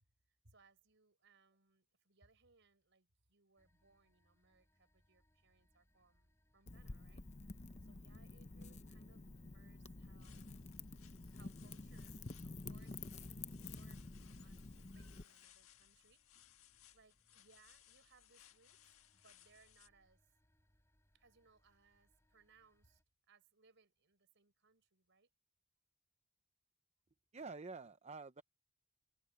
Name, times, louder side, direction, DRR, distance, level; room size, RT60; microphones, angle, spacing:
voice 1, 0.0-10.5 11.3-20.2 21.1-23.0 23.3-25.3, right 4 dB, 60° right, 5.1 m, -71 dB
sound 1, 3.6-23.0, equal, 15° left, 4.2 m, -78 dB
Wind / Fire, 6.7-15.2, left 3 dB, 35° left, 0.8 m, -50 dB
sound 2, 10.0-19.9, left 12 dB, 90° left, 1.6 m, -66 dB
voice 2, 27.3-28.4, right 4 dB, 30° right, 0.7 m, -48 dB
head